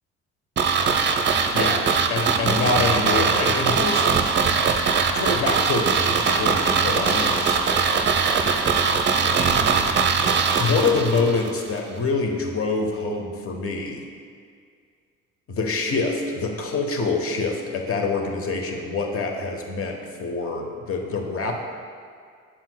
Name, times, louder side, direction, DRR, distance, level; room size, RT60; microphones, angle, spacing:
sound 1, 0.6-11.5 11.8-11.9, right 5 dB, 25° right, 0.6 m, -21 dB
voice 1, 2.1-4.0 4.3-4.7 5.1-7.6 10.6-14.0 15.5-21.5, left 3 dB, 35° left, 3 dB, 1.0 m, -25 dB
9.9 x 7.3 x 2.3 m, 2.1 s
figure-of-eight pair, 50°, 41 cm